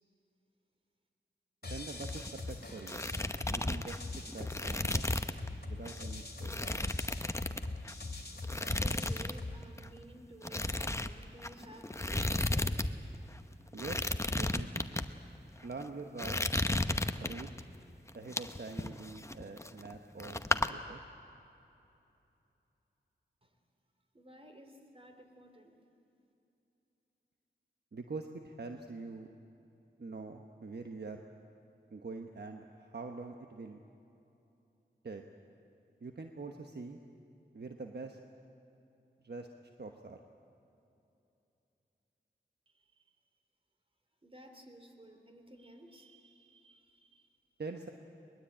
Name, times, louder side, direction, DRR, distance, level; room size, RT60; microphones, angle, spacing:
sound 1, 1.6-9.6, left 3 dB, 50° left, 2.7 m, -43 dB
voice 1, 1.6-3.0 3.5-4.0 4.3-5.0 5.6-6.5 13.7-14.9 15.6-16.5 17.2-17.5 18.1-21.0 27.9-29.3 30.0-31.2 31.9-33.8 35.0-35.2 36.0-37.0 37.5-38.2 39.2-40.2 47.6-47.9, right 3 dB, 60° right, 4 dB, 1.2 m, -44 dB
sound 2, 1.9-2.5 2.8-5.5 5.8-6.0 6.4-8.0 8.4-9.4 9.6-9.9 10.4-12.9 13.1-13.2 13.7-15.1 15.6-15.8 16.2-17.6 18.1-19.9 20.2-20.7, left 1 dB, 15° left, 0.9 m, -34 dB
voice 2, 8.8-12.9 14.1-14.2 23.4-23.6 24.1-25.8 42.7-43.1 44.2-47.3, right 1 dB, 30° right, 4 dB, 3.5 m, -55 dB
22.0 x 21.0 x 8.7 m, 2.9 s
wide cardioid pair, 55°, 19 cm